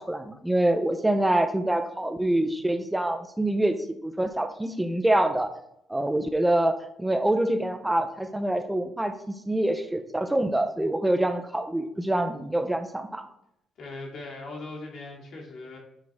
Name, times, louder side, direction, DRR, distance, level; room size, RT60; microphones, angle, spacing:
voice 1, 0.0-3.8 4.0-5.5 5.9-13.2, right 1 dB, 10° right, 7 dB, 0.6 m, -25 dB
voice 2, 13.8-15.8, left 2 dB, 65° left, -2 dB, 2.5 m, -39 dB
8.7 x 4.0 x 3.6 m, 0.79 s
cardioid pair, 90°, 0 cm